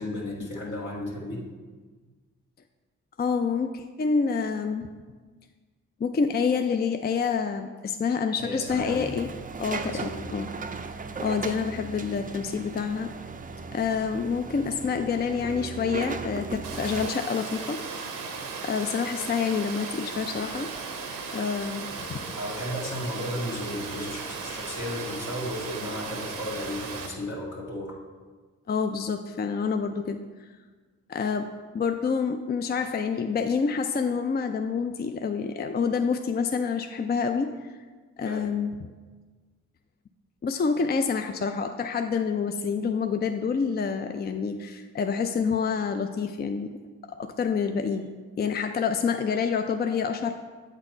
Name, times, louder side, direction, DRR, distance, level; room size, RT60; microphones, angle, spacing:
voice 1, 0.0-1.4 8.4-9.2 9.8-10.3 22.4-27.9 38.3-38.4, left 1 dB, 70° left, -4 dB, 1.8 m, -34 dB
voice 2, 3.2-4.9 6.0-9.3 9.6-10.5 11.2-13.1 13.7-17.8 18.6-20.7 21.3-22.2 28.7-30.2 31.1-37.7 38.2-38.7 40.4-46.7 47.2-48.1 48.4-50.3, left 5 dB, 30° left, 7 dB, 0.4 m, -27 dB
sound 1, 8.7-17.1, right 4 dB, 25° right, 0.4 m, -37 dB
Water, 16.6-27.1, right 4 dB, 85° right, 0.8 m, -36 dB
7.9 x 4.1 x 4.3 m, 1.4 s
supercardioid pair, 40°, 31 cm